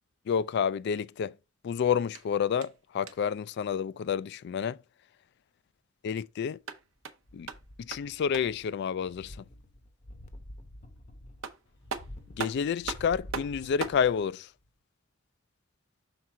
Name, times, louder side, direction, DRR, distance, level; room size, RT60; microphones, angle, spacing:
voice 1, 0.3-1.3 1.6-4.8 6.0-6.6 7.3-7.5 7.8-9.4 12.4-14.5, left 7 dB, 55° left, 0.3 m, -29 dB
sound 1, 2.1-3.4 6.4-8.7 11.0-11.1 11.4-14.1, right 5 dB, 80° right, 0.8 m, -40 dB
sound 2, 7.2-8.7 9.0-14.3 14.6-14.7, left 1 dB, 35° left, 0.8 m, -48 dB
5.9 x 3.7 x 4.3 m
head